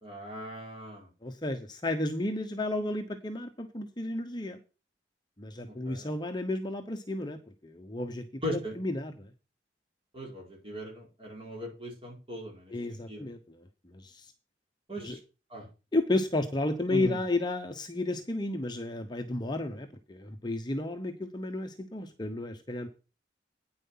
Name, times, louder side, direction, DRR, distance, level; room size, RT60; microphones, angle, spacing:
voice 1, 0.0-1.1 5.7-6.1 8.4-8.7 10.1-12.7 13.1-13.3 14.9-15.2 15.5-15.7 16.9-17.2, equal, 30° right, -1 dB, 4.7 m, -38 dB
voice 2, 1.2-4.6 5.4-9.3 12.7-14.3 15.0-15.2 15.9-22.9, left 2 dB, 25° left, 5 dB, 0.9 m, -33 dB
9.5 x 7.5 x 5.7 m, 0.32 s
head